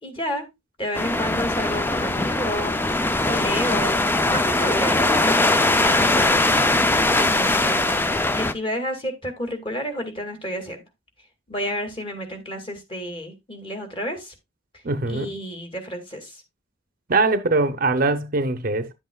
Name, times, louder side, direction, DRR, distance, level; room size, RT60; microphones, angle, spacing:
voice 1, 0.0-0.5 0.8-2.8 3.3-4.0 4.3-6.4 7.2-8.0 8.4-10.8 11.5-14.3 15.1-16.4, equal, 30° left, 2.1 m, -30 dB
sound 1, 0.9-8.5, left 2 dB, 10° left, 0.4 m, -21 dB
voice 2, 14.8-15.4 17.1-18.9, right 3 dB, 50° right, 0.7 m, -22 dB
10.0 x 7.8 x 2.3 m
head